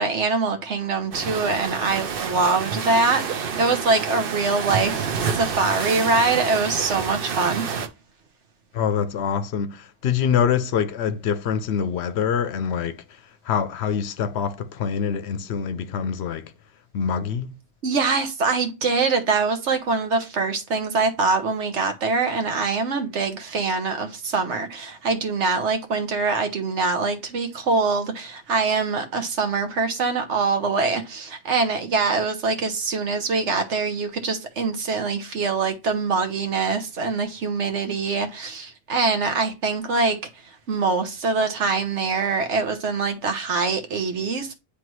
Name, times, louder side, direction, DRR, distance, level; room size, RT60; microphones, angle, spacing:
voice 1, 0.0-7.6 17.8-40.2 40.7-44.5, right 4 dB, 80° right, 1.3 m, -24 dB
sound 1, 1.1-7.9, right 6 dB, 55° right, 0.9 m, -28 dB
voice 2, 8.7-13.0 13.5-16.5 16.9-17.5, left 7 dB, 70° left, 0.8 m, -25 dB
9.3 x 3.4 x 3.1 m
omnidirectional pair, 1.2 m